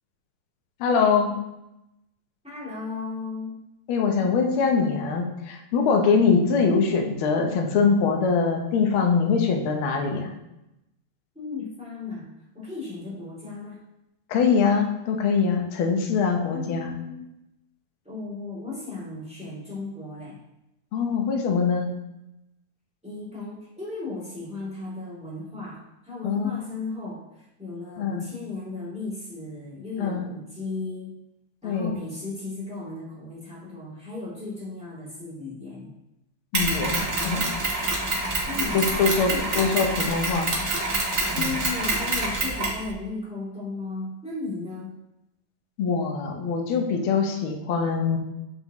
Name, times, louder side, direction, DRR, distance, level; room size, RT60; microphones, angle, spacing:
voice 1, 0.8-1.4 3.9-10.3 14.3-17.0 20.9-22.0 26.2-26.5 28.0-28.2 30.0-30.3 31.6-31.9 36.5-37.5 38.7-40.5 41.4-41.5 45.8-48.2, left 5 dB, 75° left, 2 dB, 1.2 m, -23 dB
voice 2, 2.4-3.6 11.3-12.3 12.5-13.8 16.5-17.3 18.0-20.4 23.0-25.8 26.0-31.2 31.6-35.9 38.4-38.8 39.3-39.5 41.3-45.0, left 3 dB, ahead, -7 dB, 2.2 m, -35 dB
Mechanisms, 36.5-42.8, right 2 dB, 70° right, 0.6 m, -26 dB
7.6 x 6.3 x 3.1 m, 0.89 s
omnidirectional pair, 3.6 m